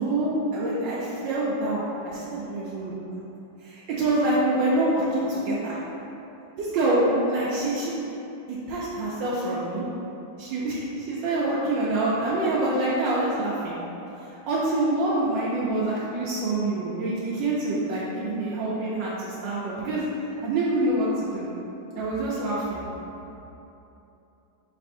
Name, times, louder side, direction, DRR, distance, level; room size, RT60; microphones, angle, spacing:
voice 1, 0.0-2.9 3.6-5.8 6.6-7.9 8.7-9.8 10.4-13.8 14.5-20.0 20.4-21.5 22.0-22.8, right 2 dB, 80° right, -7 dB, 1.3 m, -26 dB
4.1 x 4.1 x 2.6 m, 3.0 s
omnidirectional pair, 2.0 m